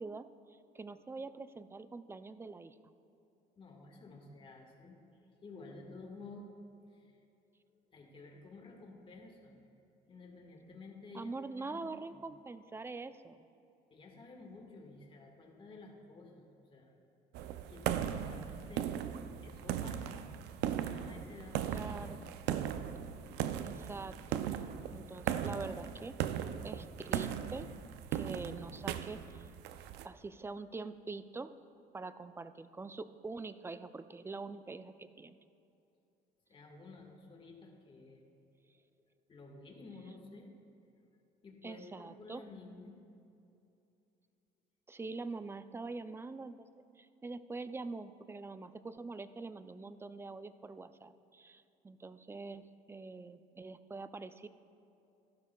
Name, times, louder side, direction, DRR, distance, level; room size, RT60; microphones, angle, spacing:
voice 1, 0.0-2.8 11.1-13.5 21.7-22.2 23.6-24.5 24.9-26.2 26.6-27.7 28.1-29.5 30.0-31.5 31.9-35.4 41.6-42.4 44.9-46.7 47.0-54.5, right 3 dB, 15° right, 12 dB, 0.4 m, -44 dB
voice 2, 3.5-6.5 6.9-7.2 7.9-9.5 10.1-12.2 13.9-16.9 17.2-17.3 17.7-20.2 20.8-21.7 36.5-38.2 38.6-38.7 39.3-40.5 41.4-43.0, left 3 dB, 30° left, 1 dB, 1.6 m, -52 dB
sound 1, 17.3-30.0, right 10 dB, 85° right, 0.5 m, -38 dB
15.0 x 12.0 x 2.3 m, 2.7 s
cardioid pair, 110°, 17 cm